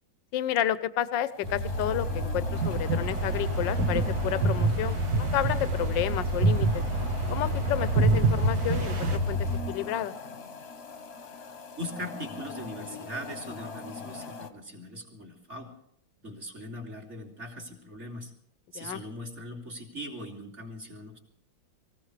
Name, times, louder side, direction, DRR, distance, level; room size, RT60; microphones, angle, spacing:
voice 1, 0.3-6.8 7.3-10.1 18.7-19.0, left 11 dB, 70° left, 15 dB, 1.3 m, -31 dB
sound 1, 1.3-14.5, left 4 dB, 35° left, 1.2 m, -42 dB
sound 2, 1.4-9.6, equal, 80° right, 2.4 m, -31 dB
sound 3, 2.5-9.2, right 3 dB, 50° right, 1.7 m, -28 dB
voice 2, 11.8-15.7 16.2-18.3 18.7-21.2, equal, 35° right, -1 dB, 3.1 m, -40 dB
24.5 x 15.5 x 3.3 m, 0.70 s
omnidirectional pair, 2.2 m